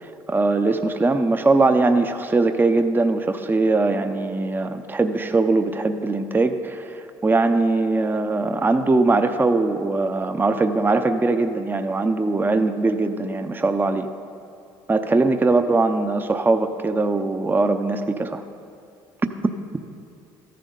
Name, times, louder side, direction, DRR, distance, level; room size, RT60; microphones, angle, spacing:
voice 1, 0.0-14.1 14.9-18.4, right 3 dB, 20° right, 8 dB, 0.6 m, -21 dB
13.5 x 10.0 x 3.9 m, 2.4 s
supercardioid pair, 70°, 11 cm